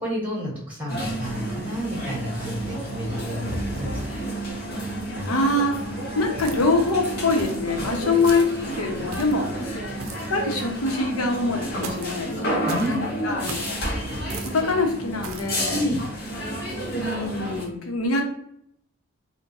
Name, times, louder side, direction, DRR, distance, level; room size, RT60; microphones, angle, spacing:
voice 1, 0.0-4.2 5.1-5.3 8.0-8.1 9.5-9.6 12.6-13.4 15.7-16.0, equal, 5° right, -4 dB, 1.2 m, -30 dB
sound 1, 0.9-17.6, right 1 dB, 45° left, 0.9 m, -31 dB
voice 2, 5.3-9.8 10.3-12.5 12.8-13.8 14.4-15.8 16.9-18.3, left 2 dB, 85° left, 2 dB, 0.8 m, -24 dB
sound 2, 6.4-6.9 7.4-7.7 8.2-8.6 9.1-9.5 10.0-10.4 11.8-12.2 12.7-13.0 13.5-13.8 14.3-14.6 15.2-15.5, right 4 dB, 80° right, 0.5 m, -37 dB
3.8 x 2.2 x 2.6 m, 0.71 s
head